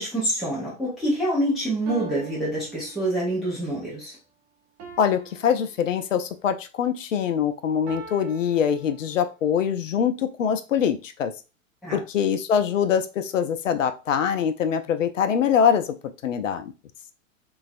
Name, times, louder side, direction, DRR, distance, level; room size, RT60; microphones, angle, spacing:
voice 1, 0.0-4.2 11.8-12.0, right 1 dB, ahead, -7 dB, 0.3 m, -26 dB
sound 1, 1.9-3.5 4.8-6.4 7.9-9.5, right 7 dB, 30° right, 0.7 m, -43 dB
voice 2, 5.0-11.3 11.9-15.9 16.2-16.7, left 8 dB, 70° left, 9 dB, 0.5 m, -23 dB
3.1 x 2.3 x 2.5 m, 0.30 s
figure-of-eight pair, 95°, 40 cm